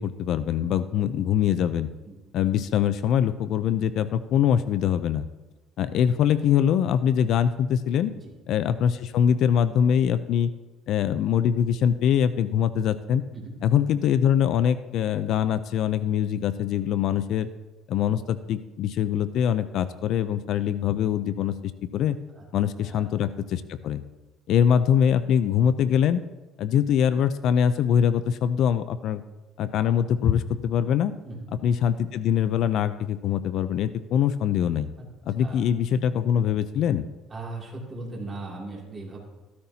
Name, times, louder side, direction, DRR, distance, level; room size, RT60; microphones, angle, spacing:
voice 1, 0.0-1.9 2.3-5.2 5.8-8.1 8.5-10.5 10.9-13.2 13.6-17.5 17.9-22.2 22.5-24.0 24.5-26.2 26.6-29.2 29.6-31.1 31.6-34.9 35.3-37.1, left 9 dB, 60° left, 13 dB, 0.4 m, -23 dB
voice 2, 22.8-23.2 31.2-31.5 35.0-35.1 35.4-35.6 37.3-39.2, right 2 dB, 25° right, -2 dB, 2.7 m, -38 dB
14.5 x 13.0 x 2.8 m, 1.2 s
cardioid pair, 150°, 0 cm